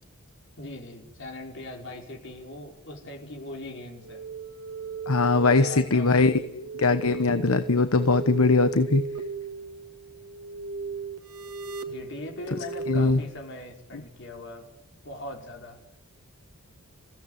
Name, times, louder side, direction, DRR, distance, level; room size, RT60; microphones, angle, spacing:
voice 1, 0.6-4.2 5.3-6.4 11.9-14.7 15.0-15.8, left 1 dB, 55° left, 2 dB, 5.5 m, -40 dB
sound 1, 4.0-13.2, right 4 dB, 80° right, 2.1 m, -36 dB
voice 2, 5.1-9.0 12.9-13.2, left 3 dB, 75° left, 10 dB, 1.1 m, -21 dB
28.0 x 16.5 x 9.5 m, 0.82 s
head